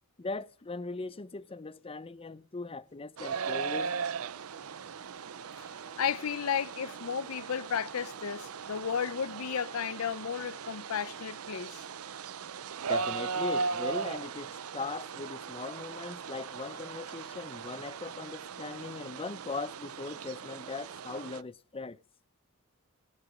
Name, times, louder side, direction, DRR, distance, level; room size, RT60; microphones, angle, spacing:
voice 1, 0.2-3.9 12.8-22.0, left 3 dB, 25° left, 0.6 m, -39 dB
sound 1, 3.2-21.4, right 5 dB, 75° right, 0.6 m, -38 dB
voice 2, 6.0-11.8, left 7 dB, 75° left, 0.6 m, -33 dB
19.5 x 6.7 x 6.1 m
head